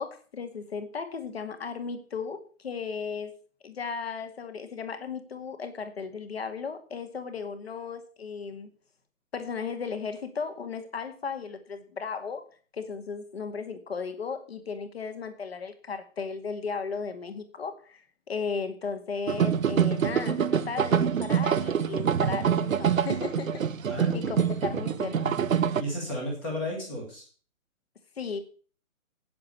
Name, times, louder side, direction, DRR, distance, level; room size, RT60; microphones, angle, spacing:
voice 1, 0.0-3.4 3.6-8.7 9.3-12.4 12.7-23.7 24.1-25.3 28.2-28.4, left 5 dB, 50° left, 7 dB, 2.2 m, -35 dB
sound 1, 19.3-25.8, right 8 dB, 75° right, 1.0 m, -25 dB
voice 2, 23.9-27.3, equal, 5° left, -3 dB, 1.1 m, -35 dB
9.2 x 7.7 x 8.2 m, 0.40 s
hypercardioid pair, 180°, 40 cm